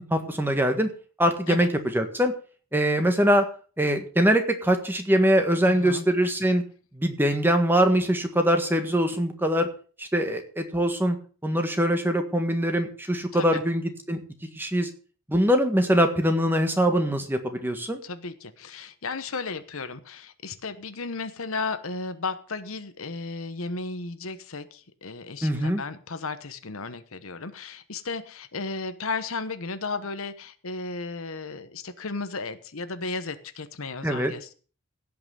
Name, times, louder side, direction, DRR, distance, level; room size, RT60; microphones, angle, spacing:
voice 1, 0.1-0.9 1.2-2.3 2.7-3.5 3.8-6.6 6.9-9.7 10.0-11.2 11.4-14.2 14.5-14.9 15.3-18.0 25.4-25.8 34.0-34.3, equal, 10° right, 6 dB, 1.6 m, -23 dB
voice 2, 5.6-6.1 13.3-13.6 18.0-34.5, left 4 dB, 65° left, 11 dB, 1.1 m, -34 dB
16.5 x 5.9 x 6.9 m, 0.40 s
head